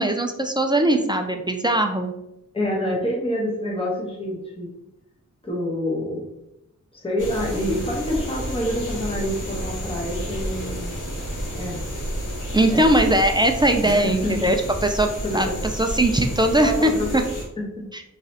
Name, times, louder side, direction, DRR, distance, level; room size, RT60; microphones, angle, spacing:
voice 1, 0.0-2.1 12.5-14.6 14.8-15.5 15.8-17.2 17.9-18.0, right 1 dB, 15° right, 4 dB, 0.3 m, -20 dB
voice 2, 2.5-4.7 5.4-6.3 6.9-10.9 11.5-11.8 12.7-12.8 13.8-14.5 15.2-15.6 16.6-17.1 17.6-17.8, equal, 20° left, -2 dB, 1.0 m, -27 dB
sound 1, 7.2-17.4, equal, 75° left, 1.3 m, -30 dB
3.7 x 3.1 x 2.8 m, 0.85 s
wide cardioid pair, 105°, 31 cm